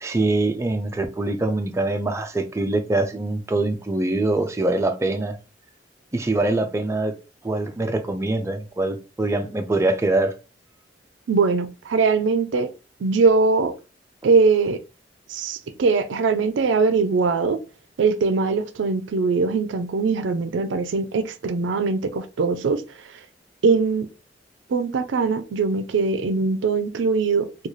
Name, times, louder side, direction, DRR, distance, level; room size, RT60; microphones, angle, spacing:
voice 1, 0.0-5.4 6.1-7.2 7.4-10.3, right 2 dB, 15° right, 0.4 m, -23 dB
voice 2, 11.3-12.7 13.0-13.7 14.2-14.8 15.3-17.6 18.0-22.8 23.6-24.1 24.7-27.7, right 4 dB, 80° right, 0.4 m, -21 dB
3.8 x 2.3 x 3.0 m
head